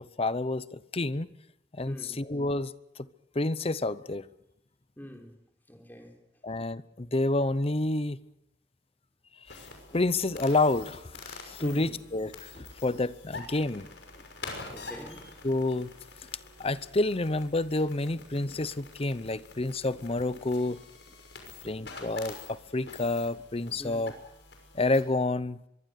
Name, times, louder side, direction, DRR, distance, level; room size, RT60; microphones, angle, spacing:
voice 1, 0.0-1.3 1.8-2.7 3.3-4.3 6.4-8.2 9.9-13.9 15.4-15.9 16.6-20.8 21.6-24.1 24.7-25.6, left 2 dB, 35° left, 0.8 m, -29 dB
voice 2, 1.9-2.2 5.0-5.4 5.7-6.2 11.6-12.0 14.7-15.3 23.8-24.0, equal, 10° left, 3.9 m, -43 dB
sound 1, 9.5-25.0, left 3 dB, 75° left, 6.1 m, -46 dB
24.0 x 23.5 x 6.7 m
head